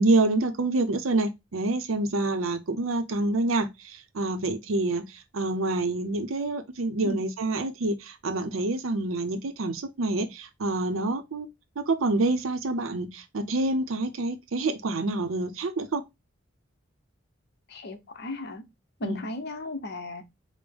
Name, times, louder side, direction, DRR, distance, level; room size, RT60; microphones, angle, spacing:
voice 1, 0.0-16.0 19.0-19.2, right 2 dB, 90° right, 0.6 m, -27 dB
voice 2, 17.7-18.6 19.0-20.2, left 2 dB, 55° left, 0.7 m, -36 dB
5.2 x 2.1 x 3.4 m
head